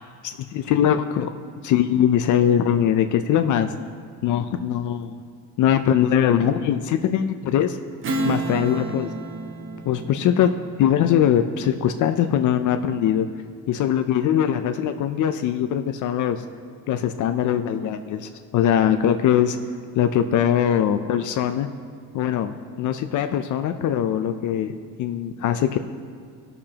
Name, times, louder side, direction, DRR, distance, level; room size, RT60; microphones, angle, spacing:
voice 1, 0.2-1.3 1.6-3.7 4.2-5.2 5.6-7.8 8.2-9.1 9.8-10.5 10.8-13.3 13.7-16.4 16.9-19.6 19.9-21.7 22.1-24.7 25.0-25.8, left 9 dB, 60° left, 8 dB, 0.5 m, -21 dB
Strum, 8.0-12.9, right 2 dB, 35° right, 0.7 m, -32 dB
18.5 x 6.7 x 2.9 m, 2.2 s
cardioid pair, 160°, 34 cm